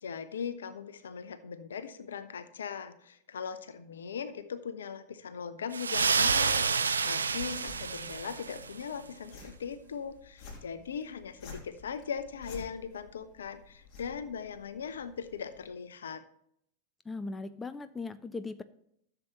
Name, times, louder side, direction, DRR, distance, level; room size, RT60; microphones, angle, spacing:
voice 1, 0.0-16.2, left 6 dB, 65° left, 12 dB, 0.7 m, -39 dB
sound 1, 5.7-8.8, right 5 dB, 75° right, 0.5 m, -29 dB
sound 2, 7.7-15.7, left 4 dB, 35° left, 2.9 m, -52 dB
voice 2, 17.1-18.6, left 3 dB, 15° left, 13 dB, 0.4 m, -38 dB
13.5 x 6.9 x 3.0 m, 0.72 s
figure-of-eight pair, 90°, 0 cm